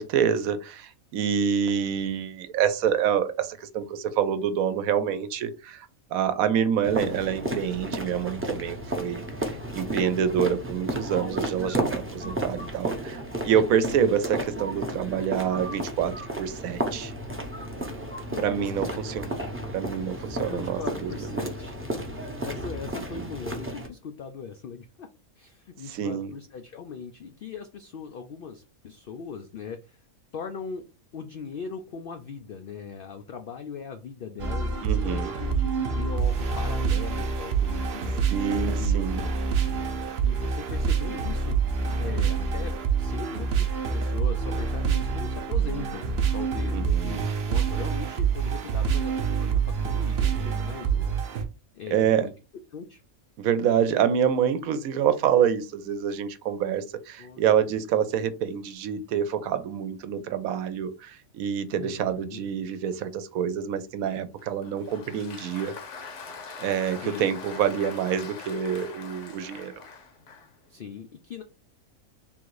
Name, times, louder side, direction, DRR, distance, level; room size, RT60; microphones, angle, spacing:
voice 1, 0.0-17.1 18.4-19.4 19.7-21.5 22.9-23.2 25.9-26.3 34.8-35.3 38.3-39.2 46.7-47.3 51.9-52.3 53.4-65.7 66.6-69.7, right 8 dB, 85° right, 11 dB, 1.0 m, -27 dB
sound 1, 6.8-23.9, right 1 dB, 15° right, 0.5 m, -33 dB
voice 2, 10.1-10.7 13.8-14.1 18.3-19.0 20.1-21.7 22.1-25.1 25.4-30.1 30.3-30.9 31.1-38.2 38.7-39.0 40.2-41.6 42.0-47.2 47.5-51.1 51.7-52.3 52.7-53.0 53.6-53.7 57.2-57.8 61.8-62.5 67.0-67.4 70.7-71.4, left 6 dB, 75° left, 6 dB, 0.5 m, -40 dB
sound 2, 34.4-51.4, right 6 dB, 55° right, 0.8 m, -26 dB
Applause, 64.4-70.6, left 4 dB, 60° left, 1.1 m, -43 dB
3.6 x 2.5 x 4.6 m, 0.30 s
omnidirectional pair, 1.5 m